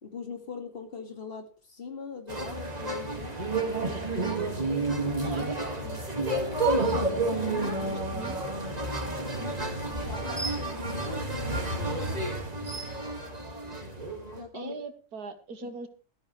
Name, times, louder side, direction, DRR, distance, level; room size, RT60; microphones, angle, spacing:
voice 1, 0.0-3.4 5.0-5.4 5.8-6.0 6.7-7.8 9.3-12.2 14.3-14.8 15.6-15.7, left 5 dB, 40° left, 4 dB, 2.3 m, -41 dB
sound 1, 2.3-14.4, right 2 dB, 25° right, 2.1 m, -30 dB
voice 2, 5.2-5.6 7.7-8.5 14.5-15.9, right 4 dB, 85° right, 8 dB, 2.0 m, -41 dB
17.5 x 12.0 x 3.3 m, 0.36 s
omnidirectional pair, 1.6 m